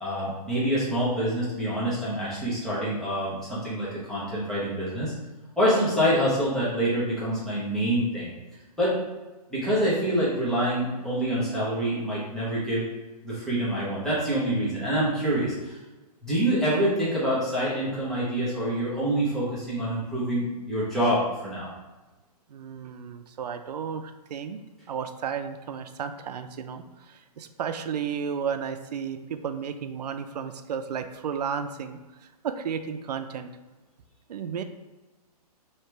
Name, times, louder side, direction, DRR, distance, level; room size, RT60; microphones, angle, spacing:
voice 1, 0.0-5.1 5.6-8.3 8.8-9.0 9.5-12.8 13.2-15.8 16.2-21.7, right 1 dB, ahead, -9 dB, 0.8 m, -26 dB
voice 2, 22.5-24.6 24.9-32.0 32.4-33.5 34.3-34.6, right 7 dB, 80° right, 8 dB, 0.5 m, -33 dB
3.3 x 2.8 x 4.6 m, 1.1 s
hypercardioid pair, 165°, 20 cm